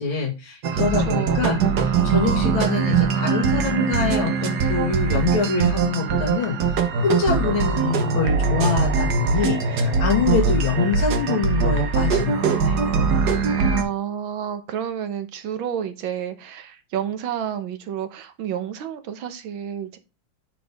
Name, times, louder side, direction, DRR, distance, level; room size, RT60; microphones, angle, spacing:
voice 1, 0.0-12.8, left 5 dB, 85° left, 2.7 m, -25 dB
sound 1, 0.6-13.8, right 5 dB, 60° right, 1.6 m, -21 dB
voice 2, 0.8-1.5 13.5-20.0, right 9 dB, 85° right, 1.8 m, -30 dB
9.1 x 4.6 x 3.4 m
omnidirectional pair, 2.1 m